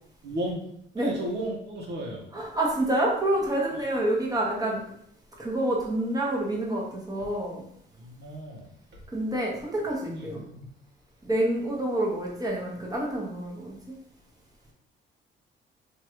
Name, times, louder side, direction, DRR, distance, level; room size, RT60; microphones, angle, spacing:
voice 1, 0.2-0.6 1.0-2.3 3.7-3.9 8.0-9.0 10.0-10.7, right 1 dB, 60° right, -1 dB, 1.0 m, -35 dB
voice 2, 2.3-4.8 5.4-7.6 9.1-10.4 11.2-13.7, right 1 dB, 20° right, -2 dB, 1.0 m, -27 dB
3.0 x 2.5 x 3.0 m, 0.68 s
cardioid pair, 90°, 20 cm